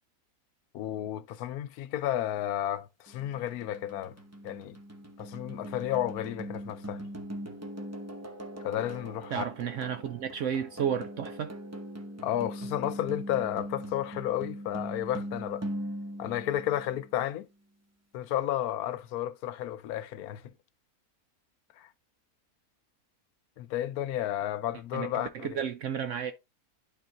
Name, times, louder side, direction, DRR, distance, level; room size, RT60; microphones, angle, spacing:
voice 1, 0.7-4.1 4.4-4.8 5.2-7.0 8.6-9.4 12.2-15.7 16.2-17.5 18.1-20.4 21.8-21.9 23.6-25.6, left 12 dB, 80° left, 1.1 m, -32 dB
sound 1, 3.1-17.2, right 1 dB, 15° right, 0.6 m, -41 dB
voice 2, 9.3-11.5 24.9-26.3, right 8 dB, 65° right, 0.8 m, -32 dB
12.0 x 4.0 x 2.6 m
omnidirectional pair, 1.6 m